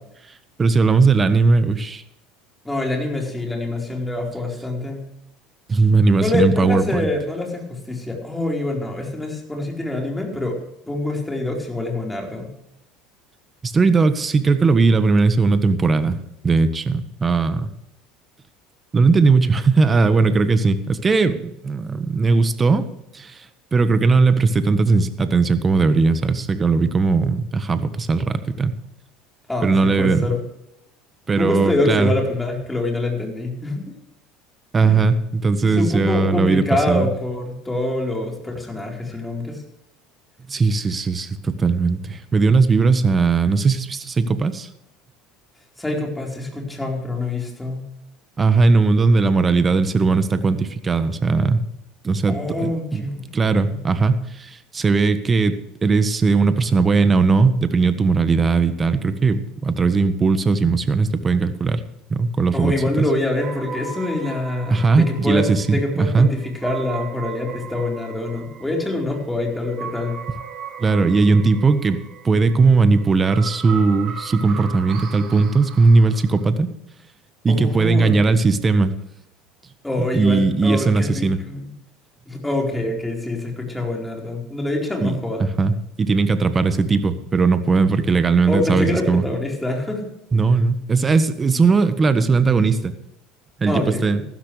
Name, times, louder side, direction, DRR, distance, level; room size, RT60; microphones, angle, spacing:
voice 1, 0.6-2.0 5.7-7.1 13.6-16.2 16.4-17.7 18.9-22.9 23.1-23.5 23.7-28.8 29.6-30.3 31.3-32.1 34.7-37.1 40.5-44.7 48.4-51.6 52.0-53.1 53.3-61.8 62.1-63.0 64.7-66.3 70.8-76.7 77.4-78.9 80.1-81.4 85.0-89.2 90.3-92.9 93.6-94.2, right 4 dB, 25° right, 11 dB, 1.4 m, -18 dB
voice 2, 2.6-5.0 6.2-10.6 10.8-12.5 29.5-30.4 31.3-34.0 34.8-35.1 35.6-39.6 45.8-47.8 52.3-53.3 53.7-53.8 62.5-65.5 65.7-70.2 77.5-78.2 79.8-81.7 82.3-85.4 88.5-90.1 93.7-94.3, left 2 dB, 10° left, 1 dB, 4.4 m, -25 dB
sound 1, 63.4-76.5, right 6 dB, 50° right, 3.2 m, -37 dB
15.0 x 13.0 x 3.4 m, 0.83 s
hypercardioid pair, 85°, 0 cm